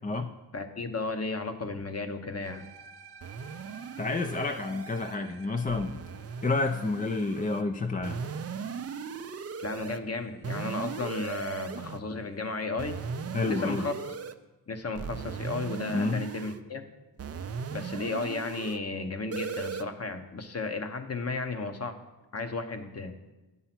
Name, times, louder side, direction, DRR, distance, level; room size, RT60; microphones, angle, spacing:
voice 1, 0.5-2.7 9.6-13.0 13.4-13.9 14.7-16.8 17.7-22.0 22.3-23.1, left 3 dB, 35° left, 7 dB, 0.9 m, -34 dB
sound 1, 2.4-10.8, right 4 dB, 65° right, 0.9 m, -54 dB
sound 2, 3.2-5.2 5.7-7.6 8.0-10.0 10.4-12.0 12.8-14.3 15.0-16.6 17.2-18.8 19.3-19.8, right 6 dB, 35° right, 0.5 m, -38 dB
voice 2, 4.0-6.0 6.4-8.2 13.3-13.9 15.9-16.2, left 3 dB, 20° left, 7 dB, 0.4 m, -29 dB
8.8 x 5.6 x 5.9 m, 1.1 s
cardioid pair, 80°, 42 cm